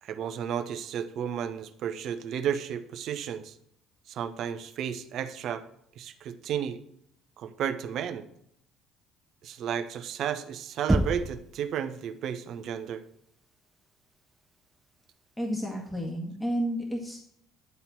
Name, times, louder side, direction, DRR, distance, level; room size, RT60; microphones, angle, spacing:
voice 1, 0.0-3.5 4.1-5.6 6.0-6.8 7.4-8.2 9.4-13.0, right 8 dB, 60° right, 9 dB, 0.9 m, -33 dB
Knock, 10.9-11.5, right 1 dB, 10° right, 0.5 m, -25 dB
voice 2, 15.4-17.2, equal, 10° left, 0 dB, 1.9 m, -31 dB
10.5 x 4.1 x 6.1 m, 0.72 s
hypercardioid pair, 55°, 0 cm